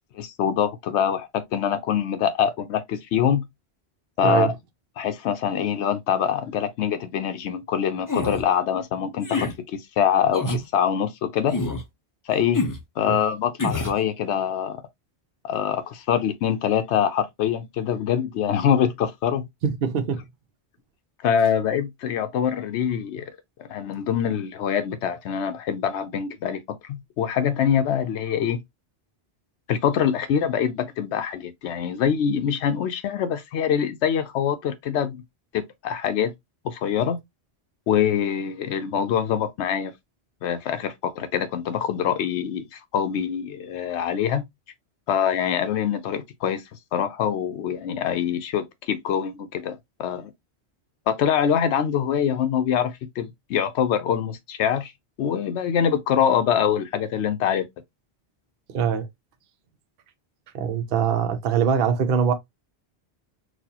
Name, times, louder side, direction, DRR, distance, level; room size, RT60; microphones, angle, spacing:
voice 1, 0.1-3.5 4.2-4.5 5.0-11.6 12.3-12.6 13.0-14.8 15.4-19.4 21.2-23.2 23.6-28.6 29.7-35.2 35.5-36.3 36.6-37.2 37.9-39.9 40.4-44.4 45.1-46.6 46.9-50.3 51.1-54.9 55.2-57.7, left 8 dB, 90° left, 0.9 m, -24 dB
sound 1, 8.1-8.4 9.2-9.5 10.3-10.6 11.5-11.8 12.5-12.8 13.6-14.0, left 2 dB, 25° left, 0.5 m, -26 dB
voice 2, 19.6-20.2 58.7-59.1 60.5-62.3, right 7 dB, 60° right, 0.8 m, -23 dB
4.1 x 2.4 x 2.8 m
omnidirectional pair, 1.1 m